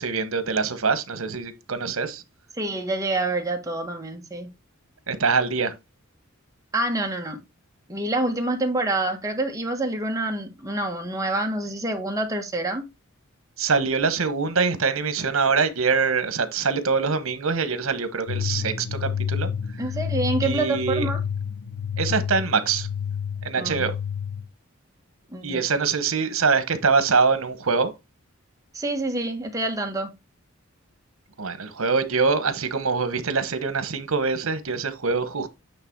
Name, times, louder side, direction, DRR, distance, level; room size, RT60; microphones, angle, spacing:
voice 1, 0.0-2.2 5.1-5.7 13.6-19.5 20.4-21.0 22.0-22.9 23.4-23.9 25.4-27.9 31.4-35.5, right 5 dB, 85° right, 1.1 m, -24 dB
voice 2, 2.6-4.5 6.7-7.4 7.9-12.8 19.8-21.2 23.6-23.9 25.3-25.7 28.7-30.1, right 2 dB, 15° right, 1.4 m, -27 dB
sound 1, 18.3-24.4, left 7 dB, 80° left, 1.4 m, -29 dB
8.7 x 3.3 x 4.6 m
head